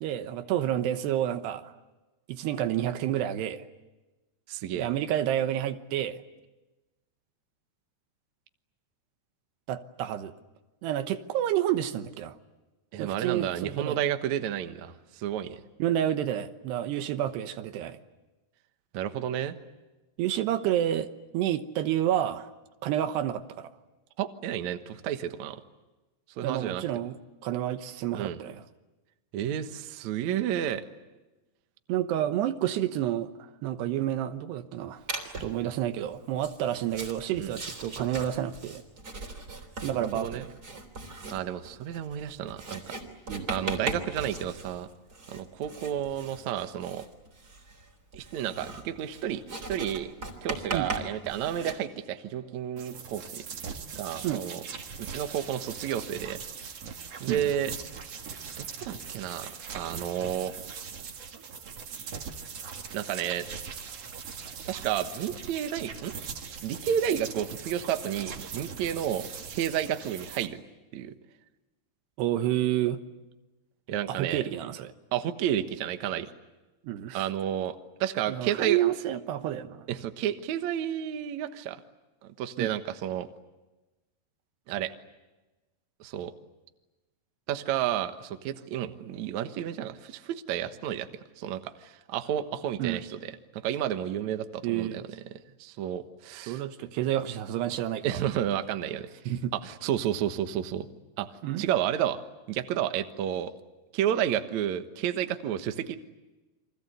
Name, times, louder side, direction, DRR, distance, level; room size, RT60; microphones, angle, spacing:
voice 1, 0.0-1.7 2.3-3.7 4.7-6.2 9.7-10.3 10.8-12.4 13.0-14.0 15.8-18.0 20.2-22.5 22.8-23.7 26.4-27.2 27.4-28.6 31.9-33.3 33.6-35.0 35.4-38.8 39.8-40.5 43.3-43.5 50.7-50.9 54.2-54.4 57.3-57.5 72.2-73.0 74.1-74.9 76.8-77.3 78.3-79.9 82.6-82.7 92.8-93.0 94.6-95.0 96.5-98.2 99.3-99.5 101.4-101.6, right 11 dB, 85° right, 9 dB, 3.2 m, -29 dB
voice 2, 4.5-4.9 12.9-15.6 18.9-19.5 24.2-25.6 26.4-26.8 28.1-28.4 29.3-30.8 37.4-37.5 40.2-40.5 41.3-42.9 43.5-44.9 45.3-47.0 48.1-50.1 50.4-53.4 53.9-54.6 55.1-56.4 57.2-57.7 58.6-60.5 62.9-63.5 64.7-66.1 66.6-70.6 70.9-71.1 73.9-74.4 75.1-76.3 77.1-78.8 79.9-81.8 82.4-83.3 84.7-84.9 86.0-86.3 87.5-91.1 91.4-95.0 95.6-96.6 98.0-99.1 99.6-100.9 101.2-101.3 101.6-102.2 102.5-103.5 103.9-106.0, right 10 dB, 65° right, 8 dB, 2.0 m, -31 dB
Writing, 35.1-35.6 36.3-51.7, right 2 dB, 25° right, 3.5 m, -39 dB
sound 1, 52.8-70.5, right 6 dB, 45° right, 2.4 m, -41 dB
29.5 x 24.0 x 8.1 m, 1.1 s
omnidirectional pair, 4.7 m